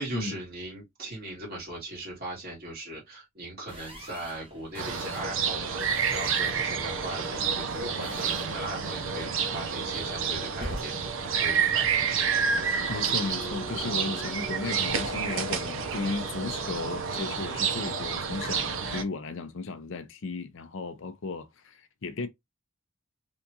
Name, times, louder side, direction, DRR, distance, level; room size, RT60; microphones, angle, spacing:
voice 1, 0.0-12.1, right 1 dB, 45° right, 2.0 m, -39 dB
sound 1, 3.7-12.8, equal, 25° right, 0.9 m, -46 dB
sound 2, 4.8-19.0, right 6 dB, 60° right, 0.6 m, -29 dB
Singing, 12.7-17.9, equal, 20° left, 0.8 m, -46 dB
voice 2, 12.9-22.3, left 3 dB, 60° left, 0.5 m, -35 dB
3.5 x 2.5 x 2.7 m
head